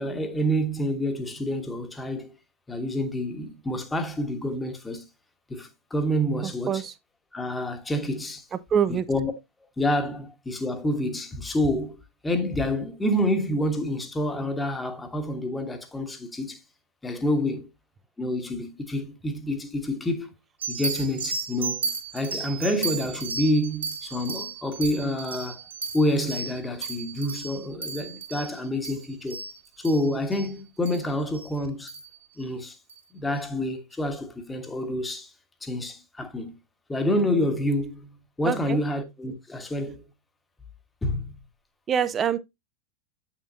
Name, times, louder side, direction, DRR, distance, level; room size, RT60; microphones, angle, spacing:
voice 1, 0.0-2.3 2.7-5.0 5.5-6.8 7.3-8.4 8.9-9.3 9.8-16.6 17.0-17.7 18.2-20.3 20.7-25.6 25.9-29.4 29.8-31.9 32.4-32.8 33.1-35.3 35.6-36.5 36.9-40.0 41.0-41.4, left 1 dB, 10° left, 1.2 m, -28 dB
voice 2, 6.4-6.9 8.7-9.1 38.4-38.8 41.9-42.4, right 8 dB, 25° right, 0.6 m, -25 dB
sound 1, 20.6-30.5 30.8-31.1 31.3-31.5 31.9-32.2 32.9-33.0, right 4 dB, 70° right, 2.1 m, -34 dB
8.2 x 5.9 x 2.6 m
figure-of-eight pair, 90°, 0 cm